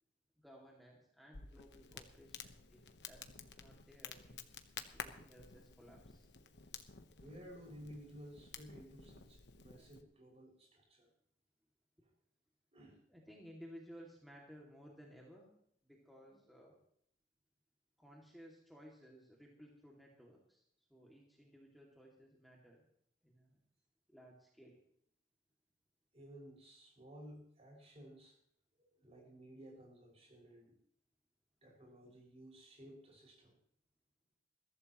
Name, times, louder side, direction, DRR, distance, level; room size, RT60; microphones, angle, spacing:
voice 1, 0.4-2.8 3.1-4.4 4.9-6.3 13.1-15.5 15.8-16.8 18.0-20.6 20.9-22.9 23.2-23.6 24.1-24.8, equal, ahead, -3 dB, 2.4 m, -58 dB
Crackle, 1.3-10.0, left 6 dB, 70° left, 1.2 m, -52 dB
voice 2, 7.2-11.1 12.0-12.1 12.7-13.0 16.3-16.4 26.1-28.4 28.9-30.7 31.6-33.6, equal, 35° right, -2 dB, 6.1 m, -55 dB
22.0 x 15.0 x 3.1 m, 0.67 s
head